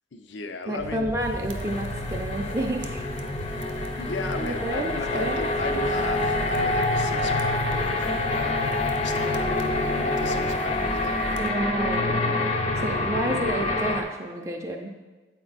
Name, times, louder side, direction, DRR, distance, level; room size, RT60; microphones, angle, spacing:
voice 1, 0.1-1.1 4.0-8.7 9.0-11.2 13.5-13.8, left 3 dB, 80° left, 7 dB, 0.6 m, -35 dB
voice 2, 0.7-3.0 4.4-5.4 11.4-12.5 12.8-14.9, right 1 dB, 15° right, 0 dB, 0.4 m, -30 dB
sound 1, 0.8-11.0, right 1 dB, 45° right, 0.7 m, -44 dB
sound 2, 1.2-11.5, right 2 dB, 85° right, 0.6 m, -39 dB
sound 3, 1.5-14.0, left 2 dB, 35° left, 0.5 m, -26 dB
8.2 x 4.4 x 4.0 m, 1.3 s
head